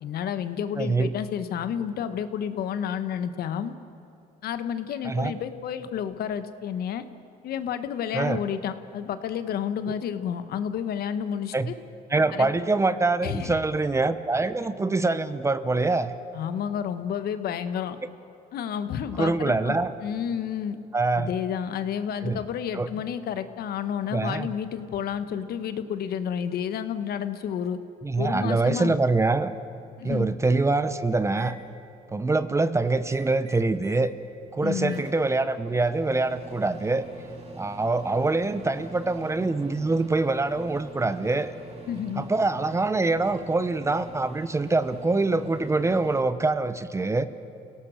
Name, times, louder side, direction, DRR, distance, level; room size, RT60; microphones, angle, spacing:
voice 1, 0.0-3.7 4.4-7.0 7.4-11.7 12.3-12.5 13.2-13.6 16.3-18.0 18.5-20.8 21.2-27.8 28.2-28.9 30.0-30.3 34.6-35.0 41.9-42.3, left 8 dB, 65° left, 11 dB, 1.3 m, -30 dB
voice 2, 0.8-1.1 5.0-5.3 8.1-8.4 11.5-11.7 12.1-16.1 19.2-19.9 20.9-21.3 22.2-22.4 22.7-22.9 24.1-24.5 28.0-29.5 30.0-31.6 32.1-34.1 34.5-37.0 37.6-41.5 42.2-47.3, right 3 dB, 15° right, 13 dB, 0.9 m, -24 dB
Microwave oven, 30.0-30.1 30.5-31.5 33.0-34.1 34.4-46.2, right 1 dB, 40° right, 4.3 m, -45 dB
29.0 x 17.5 x 6.5 m, 2.9 s
cardioid pair, 110°, 17 cm